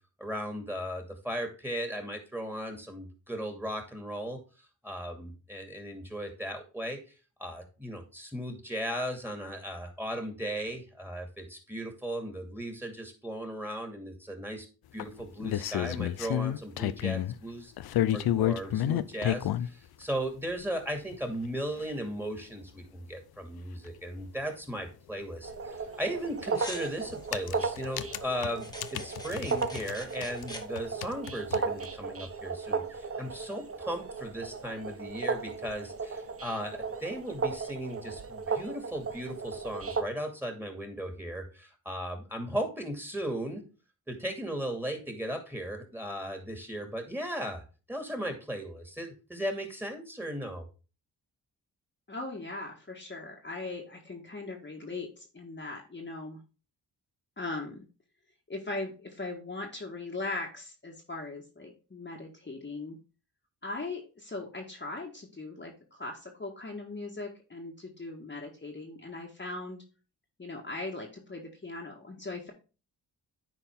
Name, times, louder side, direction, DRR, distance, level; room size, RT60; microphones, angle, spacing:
voice 1, 0.2-4.4 4.8-7.0 7.4-14.7 14.9-17.7 18.1-43.6 44.1-50.7, equal, 5° right, 5 dB, 2.3 m, -37 dB
mason typing excessively, 15.0-17.3 17.8-19.7 20.6-20.7 21.1-21.2 21.4-21.5 21.8-21.9 23.9-24.0 24.2-24.3 26.2-26.4 27.1-29.9 30.2-31.9, left 12 dB, 65° left, 0.6 m, -30 dB
sound 1, 25.4-40.0, right 5 dB, 35° right, 0.9 m, -36 dB
sound 2, 26.5-27.7 28.6-30.6, left 1 dB, 10° left, 1.6 m, -45 dB
voice 2, 52.1-56.4 57.4-57.8 58.5-63.0 63.6-69.8 70.4-72.5, left 2 dB, 25° left, 0 dB, 1.6 m, -39 dB
10.0 x 4.1 x 3.6 m, 0.33 s
supercardioid pair, 50°, 40 cm